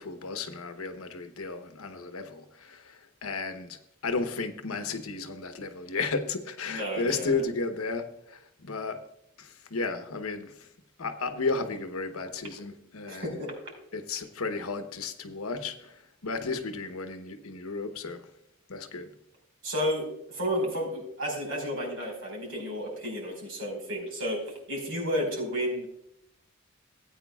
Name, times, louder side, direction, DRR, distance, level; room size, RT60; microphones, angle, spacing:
voice 1, 0.0-9.0 9.4-10.7 11.0-13.4 13.9-18.3 18.7-19.1, left 4 dB, 85° left, 1.0 m, -34 dB
voice 2, 6.7-7.4 13.1-13.5 19.6-24.4 24.7-25.9, equal, 70° right, 4.6 m, -32 dB
17.5 x 9.0 x 2.3 m
head